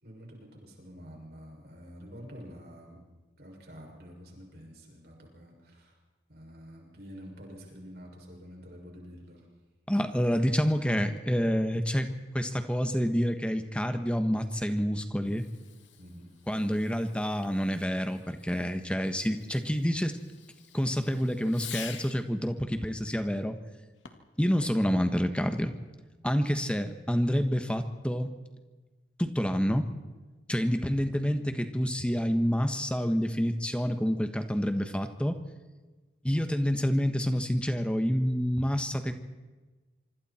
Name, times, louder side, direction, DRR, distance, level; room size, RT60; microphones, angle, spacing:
voice 1, 0.0-3.0 3.4-6.0 6.3-9.5 16.0-16.3, equal, 55° right, 0 dB, 6.5 m, -48 dB
voice 2, 9.9-12.1 12.3-15.5 16.5-20.2 20.7-23.6 24.4-25.7 26.2-28.3 29.2-29.9 30.5-35.4 36.2-39.1, equal, 5° left, 7 dB, 1.3 m, -28 dB
Fireworks, 15.2-22.3 23.9-24.4, left 9 dB, 85° left, 2.1 m, -49 dB
26.0 x 25.0 x 4.4 m, 1.2 s
head